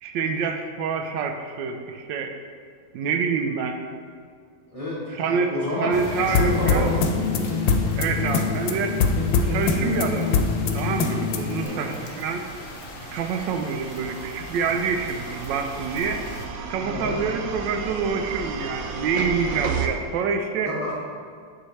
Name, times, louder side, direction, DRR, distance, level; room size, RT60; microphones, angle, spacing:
voice 1, 0.0-2.4 2.9-3.9 5.1-5.5 5.8-6.9 8.0-9.0 9.4-10.4 10.7-12.5 13.1-16.2 16.7-20.7, right 5 dB, 85° right, 5 dB, 1.3 m, -27 dB
voice 2, 4.7-6.0 6.3-7.1 7.8-8.1 11.6-11.9 16.8-17.2 20.6-20.9, left 1 dB, 20° left, -7 dB, 1.1 m, -30 dB
sound 1, 5.9-16.5, left 3 dB, 55° left, 1.0 m, -38 dB
sound 2, 6.3-11.7, left 4 dB, 90° left, 1.3 m, -23 dB
sound 3, 11.3-19.9, right 5 dB, 70° right, 0.8 m, -35 dB
9.4 x 4.5 x 3.1 m, 2.1 s
omnidirectional pair, 1.9 m